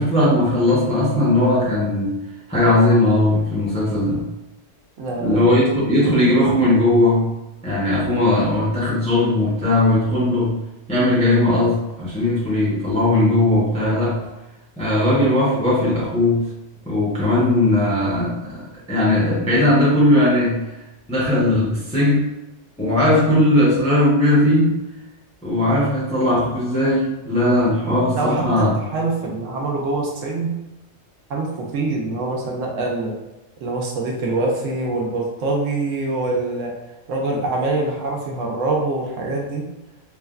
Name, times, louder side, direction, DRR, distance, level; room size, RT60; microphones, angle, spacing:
voice 1, 0.0-2.2 2.5-4.2 5.2-7.4 7.6-10.6 10.9-14.2 14.8-16.5 16.9-20.6 21.1-22.2 22.8-24.8 25.4-28.7, left 1 dB, 10° left, -6 dB, 0.4 m, -18 dB
voice 2, 5.0-5.5 28.1-30.5 31.3-33.1 33.6-36.7 37.1-39.6, right 2 dB, 80° right, -1 dB, 1.0 m, -24 dB
3.2 x 2.1 x 2.3 m, 1.0 s
omnidirectional pair, 1.3 m